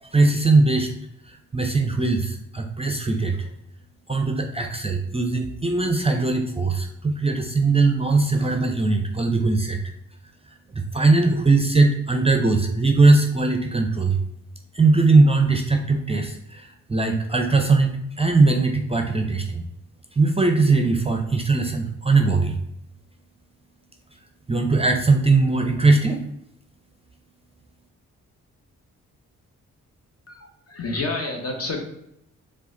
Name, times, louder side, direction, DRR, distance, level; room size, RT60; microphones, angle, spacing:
voice 1, 0.0-0.9 1.3-3.5 4.1-9.8 10.8-14.2 14.7-19.6 20.2-22.6 24.5-26.2, right 3 dB, 20° right, 4 dB, 0.5 m, -20 dB
voice 2, 30.3-31.8, left 2 dB, 45° left, 2 dB, 1.3 m, -29 dB
4.7 x 2.5 x 3.8 m, 0.77 s
supercardioid pair, 45°, 33 cm